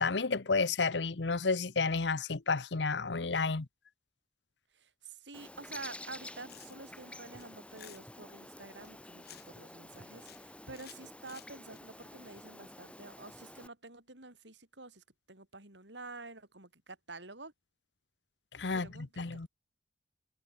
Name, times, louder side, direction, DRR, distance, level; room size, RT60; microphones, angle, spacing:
voice 1, 0.0-3.7 18.5-19.5, left 4 dB, 80° left, 1.0 m, -31 dB
voice 2, 4.7-17.5 18.7-19.5, right 3 dB, 85° right, 7.0 m, -49 dB
Bird, 5.3-13.7, left 1 dB, 5° left, 7.0 m, -50 dB
sound 1, 6.5-7.0 7.4-8.0 8.8-9.6 9.9-10.4 10.7-11.8, left 11 dB, 60° left, 5.9 m, -54 dB
head